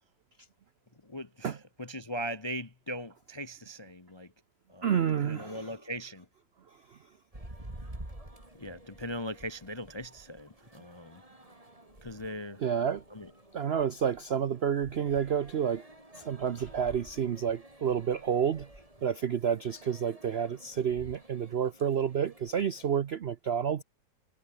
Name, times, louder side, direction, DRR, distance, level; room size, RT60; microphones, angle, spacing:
voice 1, 1.0-4.3 4.7-4.9 5.2-6.3 8.6-11.2 12.0-12.7 13.1-13.3, equal, 30° left, 0.5 m, -39 dB
voice 2, 4.8-5.7 12.6-13.0 13.5-15.8 16.1-18.7 19.0-23.8, right 8 dB, 65° right, 0.6 m, -29 dB
sound 1, 7.3-23.0, right 1 dB, 20° right, 5.1 m, -51 dB
omnidirectional pair, 1.9 m